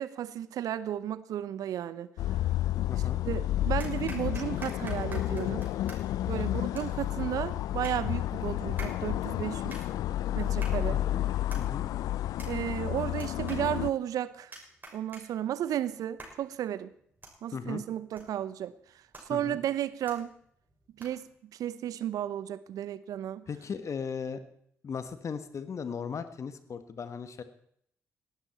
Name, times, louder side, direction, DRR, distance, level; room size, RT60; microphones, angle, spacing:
voice 1, 0.0-2.1 3.2-5.7 6.3-9.8 10.3-11.0 12.5-14.5 14.9-16.9 17.4-18.7 19.3-20.3 21.0-23.5, right 11 dB, 65° right, 17 dB, 0.7 m, -33 dB
Cars Passing By, 2.2-13.9, left 13 dB, 65° left, 0.4 m, -31 dB
voice 2, 2.9-3.2 6.3-6.7 10.9-11.2 11.6-11.9 17.5-17.8 19.3-19.6 23.5-24.4 24.8-27.4, left 6 dB, 50° left, 11 dB, 1.5 m, -37 dB
sound 1, 3.8-21.4, right 2 dB, 30° right, 6.0 m, -51 dB
18.0 x 12.0 x 4.4 m, 0.68 s
hypercardioid pair, 40°, 7 cm